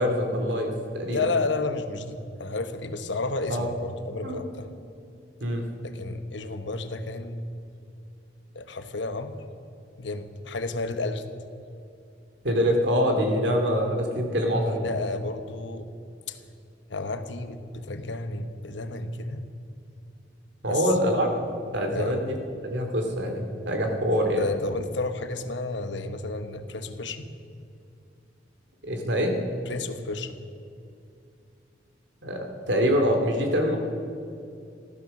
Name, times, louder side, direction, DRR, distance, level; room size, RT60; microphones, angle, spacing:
voice 1, 0.0-1.3 3.5-3.7 4.2-4.4 5.4-5.7 12.4-14.9 20.6-21.3 21.7-22.4 22.6-24.5 28.8-29.3 32.2-33.8, equal, 75° right, 3 dB, 2.3 m, -25 dB
voice 2, 1.1-4.7 5.8-7.4 8.5-9.3 10.0-11.2 12.5-12.6 14.7-15.9 16.3-16.4 16.9-19.5 20.7-21.2 21.9-22.2 24.4-27.3 29.7-30.4, left 3 dB, 85° left, 9 dB, 1.1 m, -32 dB
14.5 x 14.0 x 6.6 m, 2.5 s
head